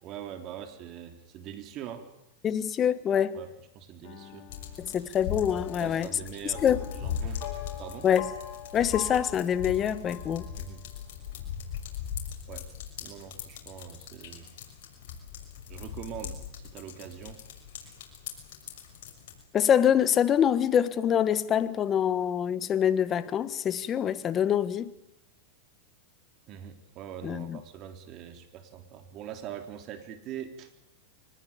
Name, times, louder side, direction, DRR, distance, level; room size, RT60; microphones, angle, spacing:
voice 1, 0.0-2.1 3.3-3.5 3.7-4.5 5.8-6.6 6.9-8.1 10.6-10.8 12.5-12.7 13.0-14.5 15.7-17.4 26.5-30.9, right 9 dB, 40° right, 3.5 m, -43 dB
voice 2, 2.4-3.4 4.8-6.1 6.4-6.9 8.0-8.3 8.7-10.5 19.5-24.9 27.2-27.6, left 9 dB, 30° left, 1.5 m, -25 dB
sound 1, 4.0-11.0, left 10 dB, 50° left, 5.4 m, -44 dB
sound 2, 4.5-19.4, left 8 dB, 70° left, 6.3 m, -40 dB
24.0 x 20.5 x 8.7 m
supercardioid pair, 130°, 0 cm